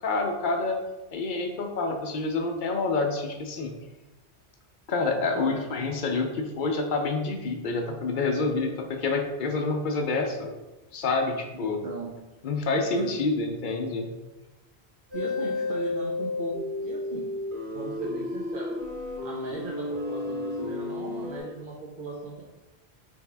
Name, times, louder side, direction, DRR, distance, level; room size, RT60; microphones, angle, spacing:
voice 1, 0.0-0.8 1.1-3.8 4.9-10.5 10.9-11.8 12.4-14.1, left 3 dB, 55° left, 3 dB, 0.6 m, -28 dB
voice 2, 11.5-12.1 12.9-13.1 15.1-17.3 17.7-18.7 19.2-22.4, right 3 dB, 55° right, -4 dB, 0.8 m, -38 dB
sound 1, 15.1-21.4, left 2 dB, 85° right, 1.8 m, -32 dB
3.5 x 3.4 x 3.3 m, 1.1 s
omnidirectional pair, 1.1 m